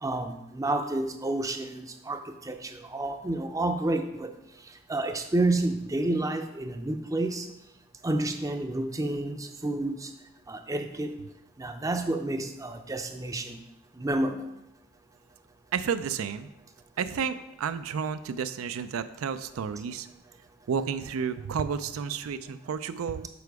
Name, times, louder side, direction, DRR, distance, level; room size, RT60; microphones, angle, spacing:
voice 1, 0.0-4.3 4.9-7.5 8.0-10.1 10.5-11.2 11.6-13.6 14.0-14.4, right 2 dB, 15° right, 6 dB, 0.5 m, -30 dB
voice 2, 15.7-16.5 17.0-20.1 20.7-23.3, right 6 dB, 85° right, 11 dB, 0.4 m, -31 dB
6.9 x 4.6 x 4.7 m, 0.90 s
head